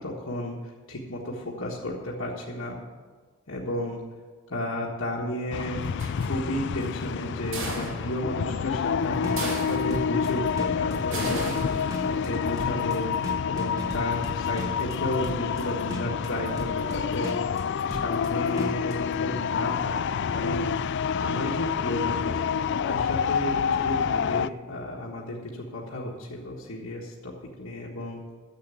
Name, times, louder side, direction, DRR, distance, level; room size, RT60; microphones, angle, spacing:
voice 1, 0.0-2.8 3.5-4.0 4.5-5.9 6.2-13.1 13.4-17.4 17.9-20.0 20.3-20.7 21.2-22.4 22.8-28.2, left 1 dB, 75° left, -5 dB, 1.5 m, -33 dB
sound 1, 5.5-24.5, left 7 dB, 60° left, 0.3 m, -28 dB
sound 2, 5.8-6.6 7.5-8.2 9.4-10.1 11.1-12.1, right 1 dB, 65° right, 2.7 m, -35 dB
sound 3, 9.2-19.0, equal, 15° right, 1.5 m, -38 dB
10.5 x 7.7 x 8.3 m, 1.5 s
head